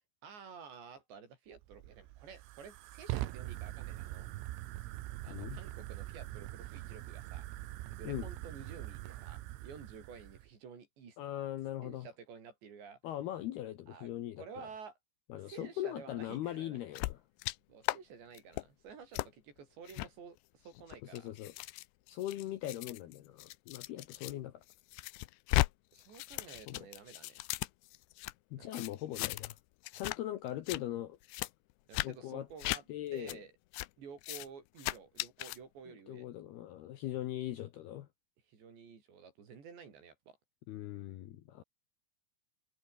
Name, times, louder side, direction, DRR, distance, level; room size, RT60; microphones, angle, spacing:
voice 1, 0.2-4.3 5.2-7.5 7.9-11.2 11.8-13.0 13.9-14.1 14.4-15.0 15.4-16.8 17.7-21.4 25.9-27.5 28.6-28.8 31.9-33.5 34.0-36.3 38.5-40.4, right 6 dB, 60° right, 6.9 m, -52 dB
Fire, 1.5-10.5, right 17 dB, 90° right, 3.9 m, -43 dB
voice 2, 5.3-5.6 8.1-8.3 11.2-12.1 13.0-14.7 15.3-17.2 21.1-21.5 22.1-24.5 26.7-26.9 28.5-29.5 29.9-31.2 32.0-32.5 32.9-33.4 36.1-38.1 40.7-41.6, left 13 dB, 70° left, 2.6 m, -40 dB
sound 1, 17.0-17.6 17.8-18.0 18.4-18.6 19.1-19.3 19.9-20.1 20.8-24.3 24.7-25.7 26.0-28.3 28.7-29.6 29.8-30.2 30.5-30.8 31.3-31.5 31.9-32.1 32.6-32.8 33.3-33.4 33.7-33.9 34.2-34.5 34.8-35.6, left 20 dB, 85° left, 2.4 m, -36 dB
omnidirectional pair, 5.7 m